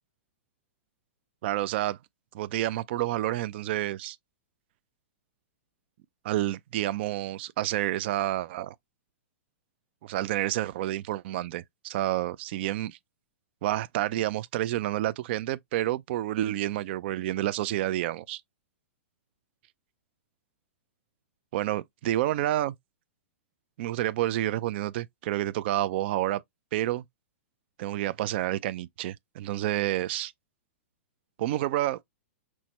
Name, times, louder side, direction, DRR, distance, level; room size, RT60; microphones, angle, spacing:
voice 1, 1.4-2.0 2.3-4.2 6.2-8.7 10.0-13.0 13.6-18.4 21.5-22.7 23.8-26.4 26.7-27.0 27.8-30.3 31.4-32.0, right 14 dB, 50° right, 0.4 m, -29 dB
6.1 x 2.1 x 4.2 m
hypercardioid pair, 130°, 7 cm